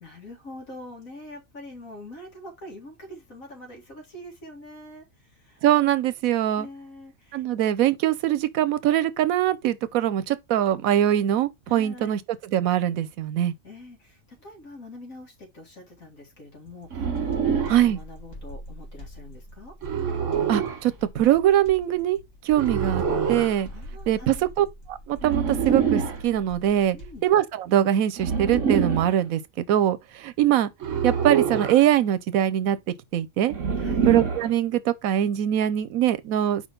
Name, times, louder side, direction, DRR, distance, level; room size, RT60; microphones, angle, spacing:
voice 1, 0.0-5.0 5.3-5.6 6.0-6.1 6.5-7.4 11.7-12.1 13.6-19.7 23.7-24.4 26.9-27.3 33.8-34.1, left 1 dB, 80° left, 2.5 m, -44 dB
voice 2, 5.6-6.7 7.3-13.5 17.7-18.0 20.5-22.2 22.4-23.0 23.3-23.7 24.1-27.0 27.2-29.4 29.7-30.7 31.0-32.8 33.1-33.5 34.0-36.7, right 11 dB, 85° right, 1.1 m, -22 dB
sound 1, 16.7-27.3, equal, 30° left, 2.2 m, -43 dB
sound 2, 16.9-17.9 19.8-20.8 22.6-23.6 25.2-26.2 28.2-29.2 30.8-31.8 33.5-34.5, right 6 dB, 65° right, 1.6 m, -25 dB
4.9 x 3.7 x 5.3 m
omnidirectional pair, 1.4 m